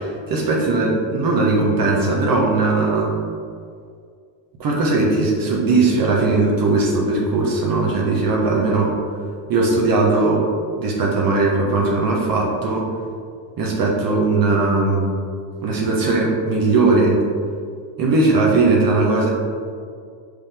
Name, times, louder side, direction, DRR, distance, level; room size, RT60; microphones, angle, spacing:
voice 1, 0.3-3.1 4.6-8.9 9.5-10.4 10.8-12.9 13.6-15.1 15.6-17.2 18.0-19.3, right 3 dB, 45° right, -2 dB, 1.2 m, -18 dB
5.6 x 5.1 x 3.5 m, 2.2 s
cardioid pair, 125°, 48 cm